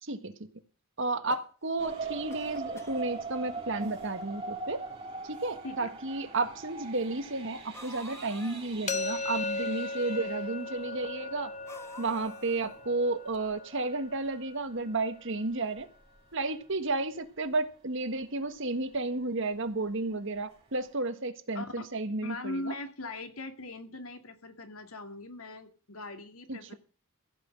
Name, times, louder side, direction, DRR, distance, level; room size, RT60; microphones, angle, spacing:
voice 1, 0.0-0.5 1.0-4.8 5.2-11.5 12.0-15.9 16.3-22.7 26.5-26.7, right 2 dB, 60° right, 1.6 m, -32 dB
sound 1, 1.0-1.9 2.3-3.1 3.9-4.0 4.2-4.3 5.3-5.4 7.7-8.8 11.7-12.8, left 2 dB, 15° left, 1.4 m, -49 dB
sound 2, 1.8-14.4 15.0-15.1 15.6-15.8 16.1-16.2, right 4 dB, 25° right, 4.6 m, -42 dB
sound 3, 8.9-14.7, left 3 dB, 35° left, 1.3 m, -37 dB
voice 2, 21.5-21.9 22.2-26.8, left 2 dB, 70° left, 2.5 m, -40 dB
16.0 x 6.0 x 8.8 m
head